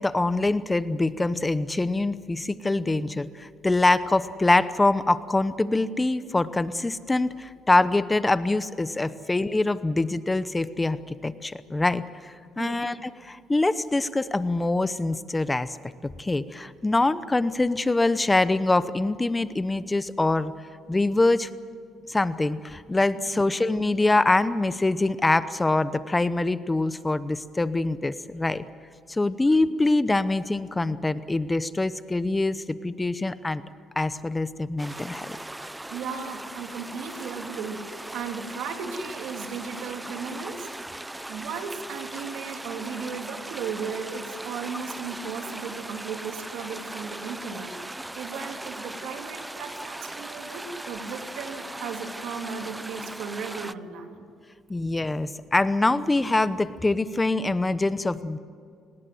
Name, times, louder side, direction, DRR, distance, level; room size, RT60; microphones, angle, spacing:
voice 1, 0.0-15.8 16.0-20.5 20.9-21.5 22.1-28.6 29.1-33.6 34.0-35.4 54.7-58.4, left 2 dB, 15° left, 14 dB, 0.8 m, -24 dB
sound 1, 34.8-53.7, right 1 dB, 10° right, 0.5 m, -39 dB
voice 2, 35.9-40.7 41.3-54.3, right 6 dB, 85° right, 4 dB, 3.2 m, -36 dB
29.5 x 19.5 x 7.8 m, 2.4 s
cardioid pair, 110°, 0 cm